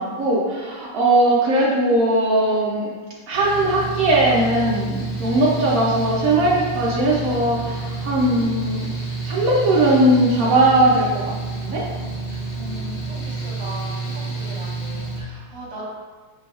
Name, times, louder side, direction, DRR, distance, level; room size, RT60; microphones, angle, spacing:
voice 1, 0.0-2.9 3.3-8.9 9.2-11.8, right 1 dB, 75° right, -5 dB, 0.7 m, -19 dB
Mechanical fan, 3.3-15.2, right 3 dB, 80° left, 0.5 m, -29 dB
voice 2, 12.6-15.8, right 1 dB, 50° right, -4 dB, 1.1 m, -38 dB
6.0 x 3.3 x 2.3 m, 1.4 s
omnidirectional pair, 2.3 m